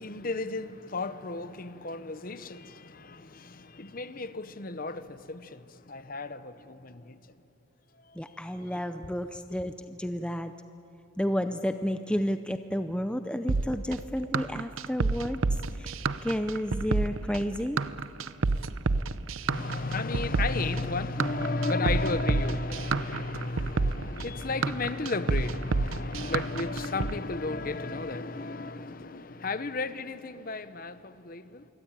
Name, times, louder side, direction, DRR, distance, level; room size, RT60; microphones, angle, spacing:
voice 1, 0.0-7.2 9.0-9.2 19.5-31.7, left 3 dB, 40° left, 0.9 m, -33 dB
voice 2, 8.2-10.5 11.2-15.4 15.8-15.9 16.2-17.8, equal, 5° left, 0.6 m, -31 dB
sound 1, 13.5-27.1, right 3 dB, 75° right, 0.7 m, -29 dB
25.5 x 23.5 x 9.0 m
head